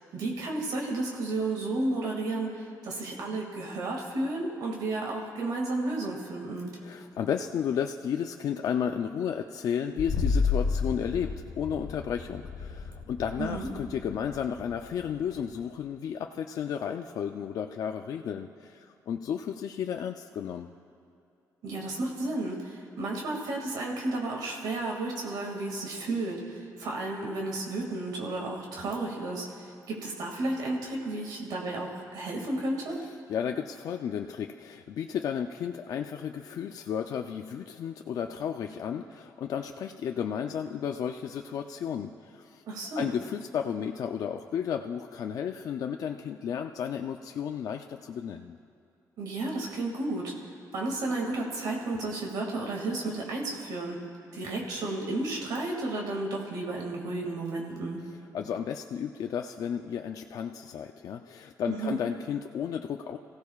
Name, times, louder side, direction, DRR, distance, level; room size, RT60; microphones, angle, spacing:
voice 1, 0.1-6.7 13.4-13.7 21.6-33.0 42.7-43.1 49.2-50.3 50.7-54.0 54.3-58.0 61.7-62.0, right 2 dB, 90° right, 0 dB, 2.2 m, -32 dB
voice 2, 6.8-20.7 33.3-42.6 43.0-48.6 58.0-63.2, left 8 dB, 65° left, 4 dB, 0.5 m, -33 dB
sound 1, 10.0-15.5, left 4 dB, 85° left, 1.1 m, -32 dB
27.5 x 16.0 x 2.4 m, 2.5 s
cardioid pair, 145°, 7 cm